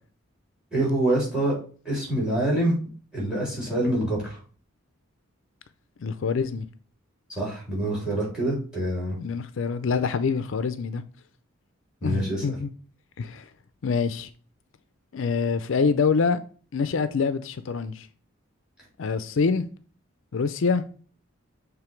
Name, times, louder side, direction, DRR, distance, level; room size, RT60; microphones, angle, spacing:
voice 1, 0.7-1.6 1.9-2.8 3.1-4.4 7.3-9.2 12.0-12.4, right 1 dB, 5° right, 3.5 m, -25 dB
voice 2, 6.0-6.7 9.2-11.0 12.0-12.7 13.2-13.5 13.8-14.3 15.1-16.4 16.7-18.1 19.0-19.7 20.3-20.8, left 5 dB, 70° left, 0.4 m, -25 dB
7.0 x 3.4 x 4.4 m
head